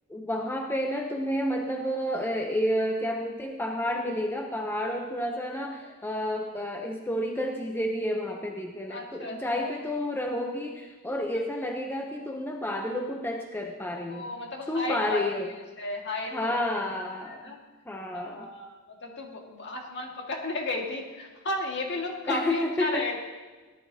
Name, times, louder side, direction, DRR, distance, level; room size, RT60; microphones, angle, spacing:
voice 1, 0.1-14.3 14.7-15.5 16.2-17.5 17.9-18.5 22.3-23.1, left 1 dB, 10° left, 2 dB, 0.7 m, -30 dB
voice 2, 8.9-9.7 14.1-15.2 15.8-16.6 17.3-17.6 18.1-23.2, left 2 dB, 55° left, 0 dB, 2.0 m, -34 dB
18.0 x 11.0 x 2.8 m, 1.3 s
head